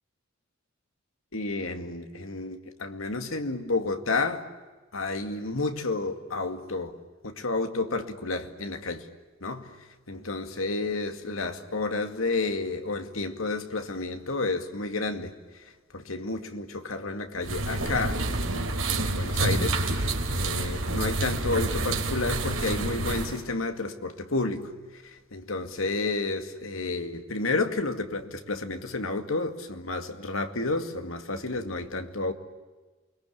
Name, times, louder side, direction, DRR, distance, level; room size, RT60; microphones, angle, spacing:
voice 1, 1.3-4.5 4.9-7.0 7.2-9.1 9.4-9.8 10.1-15.6 15.9-25.0 25.3-32.3, left 3 dB, 90° left, 2.3 m, -31 dB
sound 1, 17.4-23.4, right 2 dB, 80° right, 3.7 m, -28 dB
28.5 x 22.5 x 8.6 m
head